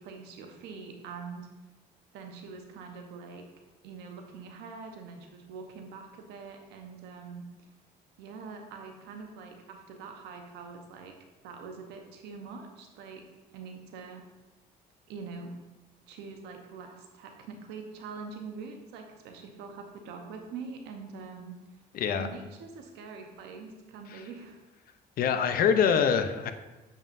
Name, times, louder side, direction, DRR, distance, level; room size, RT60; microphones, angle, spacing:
voice 1, 0.0-1.5 2.1-3.4 3.8-7.5 8.2-11.1 11.4-13.2 13.5-14.3 15.1-15.5 16.1-21.6 22.1-24.6, right 5 dB, 85° right, 4 dB, 0.9 m, -44 dB
voice 2, 21.9-22.3 24.1-24.2 25.2-26.5, left 7 dB, 60° left, 9 dB, 0.6 m, -24 dB
7.2 x 5.4 x 2.6 m, 1.1 s
cardioid pair, 110°, 17 cm